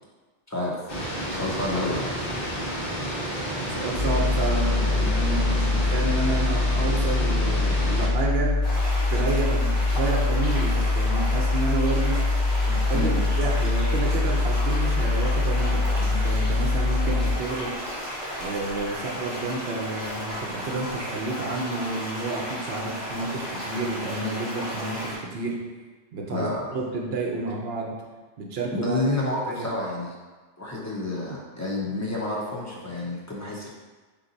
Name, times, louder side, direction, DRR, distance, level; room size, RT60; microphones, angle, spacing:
voice 1, 0.5-0.8 1.3-2.1 12.9-13.2 26.3-26.7 28.7-30.2 30.6-33.7, left 2 dB, 20° left, -4 dB, 0.4 m, -29 dB
sound 1, 0.9-8.1, equal, 55° left, 1.1 m, -31 dB
voice 2, 3.6-8.6 9.1-12.2 12.6-17.7 18.4-25.6 26.1-28.0 28.4-29.0 29.5-29.7, right 3 dB, 65° right, -1 dB, 0.9 m, -30 dB
sound 2, 4.0-17.4, left 3 dB, 75° left, 1.4 m, -23 dB
sound 3, 8.6-25.2, equal, 40° right, 1.6 m, -34 dB
3.7 x 2.8 x 3.9 m, 1.3 s
omnidirectional pair, 1.2 m